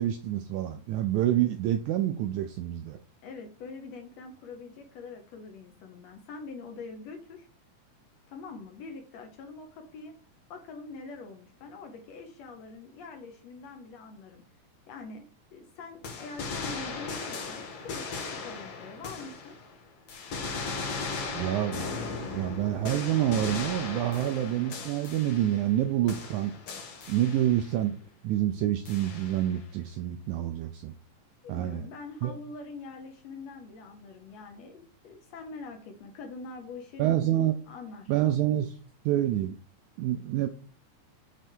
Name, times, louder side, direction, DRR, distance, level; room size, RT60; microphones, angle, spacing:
voice 1, 0.0-3.0 21.3-26.6 27.1-28.0 28.2-30.9 31.5-31.9 32.2-32.3 37.0-37.6 38.1-38.8 39.1-39.6 40.0-40.5, right 12 dB, 85° right, 7 dB, 1.7 m, -27 dB
voice 2, 3.2-7.5 8.3-10.1 10.5-14.4 14.9-15.2 15.5-19.5 31.4-37.1 37.7-38.1, left 4 dB, 75° left, 3 dB, 1.6 m, -44 dB
sound 1, 16.0-19.8 20.1-25.8 26.1-27.7 28.9-29.6, left 4 dB, 55° left, 2.3 m, -37 dB
7.5 x 3.3 x 4.5 m, 0.41 s
omnidirectional pair, 3.9 m